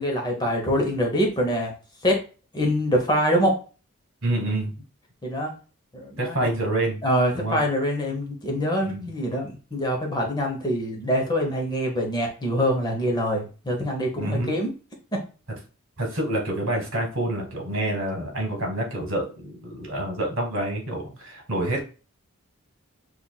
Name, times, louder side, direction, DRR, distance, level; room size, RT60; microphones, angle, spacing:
voice 1, 0.0-1.7 2.0-2.2 2.5-3.5 5.2-5.5 5.9-6.5 7.0-14.7 15.1-15.2, equal, 20° left, 0 dB, 0.8 m, -24 dB
voice 2, 4.2-4.7 6.2-7.0 7.3-7.6 8.8-9.1 14.2-14.5 16.0-21.8, right 1 dB, 65° right, 2 dB, 1.5 m, -27 dB
5.6 x 2.5 x 2.3 m, 0.35 s
head